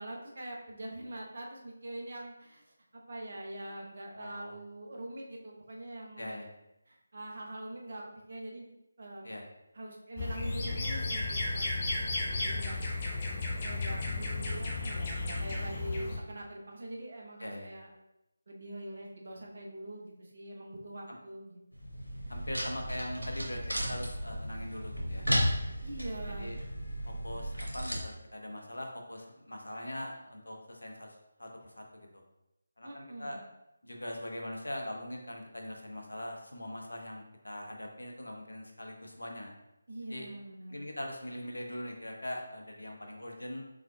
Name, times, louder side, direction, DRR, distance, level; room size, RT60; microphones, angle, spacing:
voice 1, 0.0-6.5 6.9-9.3 9.7-12.8 13.2-13.4 13.6-17.9 18.5-21.6 25.8-26.5 32.8-33.4 39.9-40.8, right 1 dB, 55° right, -1 dB, 1.0 m, -44 dB
voice 2, 4.1-4.5 6.2-6.5 9.2-9.4 17.4-17.7 22.3-23.6 23.9-25.3 26.3-26.6 27.1-32.1 32.8-33.4 33.8-39.5 40.1-40.3 40.7-43.6, left 1 dB, 75° left, 2 dB, 1.0 m, -41 dB
sound 1, 10.2-16.2, left 2 dB, 30° left, 0.8 m, -34 dB
sound 2, 21.7-28.0, equal, 90° right, 1.4 m, -34 dB
6.1 x 3.7 x 2.3 m, 0.88 s
figure-of-eight pair, 155°, 0 cm